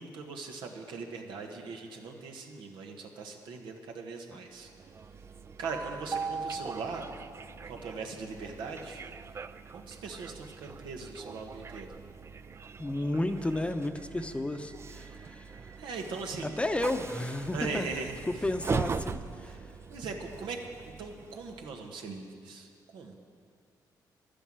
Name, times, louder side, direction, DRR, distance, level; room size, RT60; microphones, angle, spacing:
voice 1, 0.0-4.7 5.6-7.1 7.7-9.0 9.7-11.9 15.8-16.5 17.5-18.2 19.9-20.6 21.0-23.2, right 4 dB, 90° right, 2 dB, 1.3 m, -40 dB
Train, 4.6-21.9, right 5 dB, 35° right, 0.4 m, -41 dB
voice 2, 12.8-15.7 16.4-17.9 18.3-19.7, left 1 dB, 15° left, 7 dB, 0.8 m, -32 dB
11.0 x 10.0 x 7.5 m, 2.2 s
cardioid pair, 90°, 8 cm